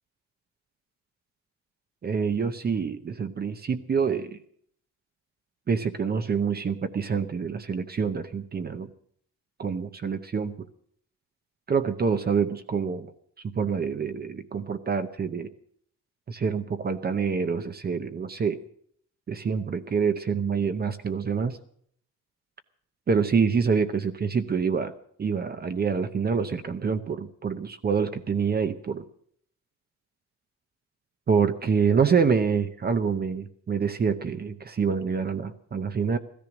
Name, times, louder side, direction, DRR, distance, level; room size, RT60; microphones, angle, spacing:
voice 1, 2.0-4.4 5.7-8.9 9.6-10.5 11.7-13.1 13.6-15.5 16.3-18.6 19.3-21.6 23.1-24.9 25.2-29.0 31.3-36.2, right 6 dB, 30° right, 9 dB, 0.8 m, -26 dB
15.5 x 13.5 x 6.1 m, 0.62 s
wide cardioid pair, 160°, 30 cm